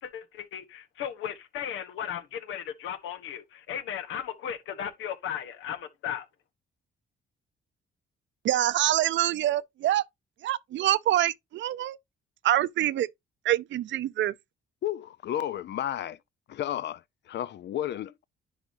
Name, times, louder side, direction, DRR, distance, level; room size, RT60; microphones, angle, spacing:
voice 1, 0.0-6.3, left 9 dB, 85° left, 1.2 m, -36 dB
voice 2, 8.4-10.0 10.4-12.0 12.4-13.1 13.4-14.3, right 13 dB, 70° right, 0.6 m, -25 dB
voice 3, 14.8-16.2 16.5-17.0 17.3-18.2, left 11 dB, 60° left, 0.6 m, -32 dB
10.0 x 4.9 x 2.7 m
cardioid pair, 90°, 20 cm